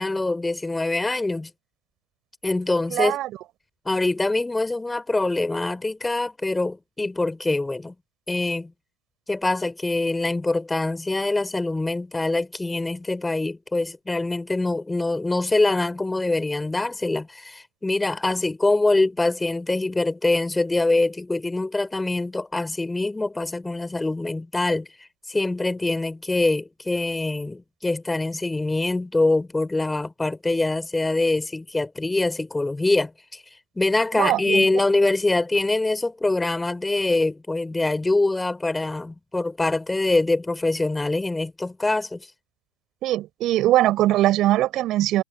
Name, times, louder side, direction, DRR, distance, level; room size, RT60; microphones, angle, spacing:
voice 1, 0.0-1.5 2.4-3.2 3.8-7.9 8.3-8.7 9.3-24.9 25.3-33.4 33.7-42.3, left 2 dB, 5° left, 5.0 m, -24 dB
voice 2, 2.9-3.3 34.1-34.7 43.0-45.2, right 14 dB, 35° right, 4.3 m, -21 dB
figure-of-eight pair, 90°, 0 cm